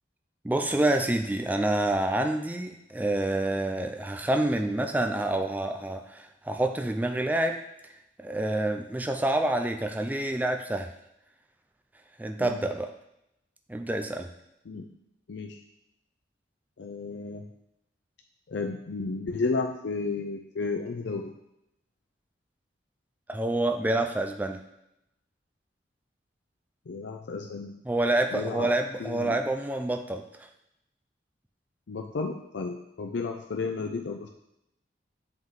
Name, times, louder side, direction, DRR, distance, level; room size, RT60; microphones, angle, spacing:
voice 1, 0.4-7.6 8.2-10.9 12.2-12.9 13.7-14.3 23.3-24.6 27.9-30.2, right 1 dB, 10° right, 5 dB, 0.4 m, -27 dB
voice 2, 16.8-17.4 18.5-21.3 26.9-27.7 28.3-28.7 29.0-29.4 31.9-34.3, left 4 dB, 80° left, 2 dB, 0.5 m, -32 dB
7.8 x 3.8 x 3.7 m, 0.83 s
head